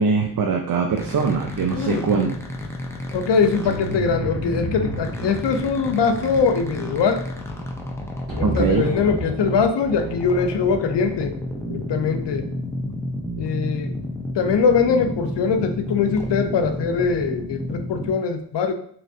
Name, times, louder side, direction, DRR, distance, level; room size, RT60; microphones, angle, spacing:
voice 1, 0.0-2.3 8.4-8.9, right 5 dB, 55° right, 3 dB, 0.5 m, -22 dB
sound 1, 1.0-18.1, left 1 dB, 5° left, 0.5 m, -31 dB
voice 2, 1.7-2.1 3.1-7.2 8.4-11.4 11.7-12.5 13.4-13.9 14.3-18.7, left 5 dB, 80° left, 7 dB, 0.5 m, -22 dB
sound 2, 3.6-9.3, right 1 dB, 40° right, 1.5 m, -32 dB
3.2 x 3.0 x 2.7 m, 0.63 s
cardioid pair, 65°, 42 cm